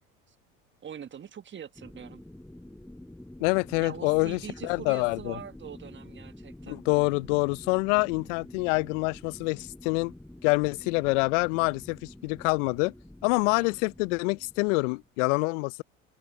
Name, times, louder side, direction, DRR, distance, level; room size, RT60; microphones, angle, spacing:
voice 1, 0.8-2.2 3.8-6.8 13.5-13.7, right 8 dB, 30° right, 1.4 m, -43 dB
sound 1, 1.8-15.1, left 1 dB, 5° left, 1.4 m, -48 dB
voice 2, 3.4-5.4 6.7-10.1 10.4-12.9 13.2-15.8, left 30 dB, 65° left, 0.6 m, -26 dB
open air
hypercardioid pair, 75°, 40 cm